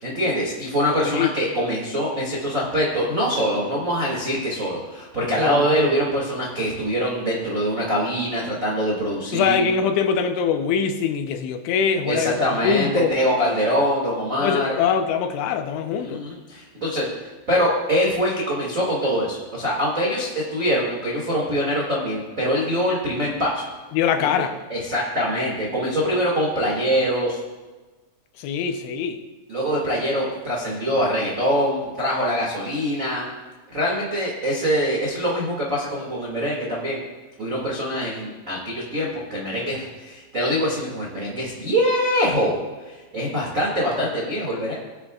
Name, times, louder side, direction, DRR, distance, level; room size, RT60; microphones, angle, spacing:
voice 1, 0.0-9.6 12.0-14.7 15.9-17.1 17.5-23.6 24.2-27.4 29.5-33.3 33.7-37.0 37.4-44.7, equal, 80° right, -4 dB, 0.7 m, -24 dB
voice 2, 9.3-13.1 14.4-16.2 23.9-24.5 28.4-29.2, left 7 dB, 80° left, 6 dB, 3.1 m, -23 dB
20.5 x 9.9 x 2.4 m, 1.3 s
omnidirectional pair, 5.5 m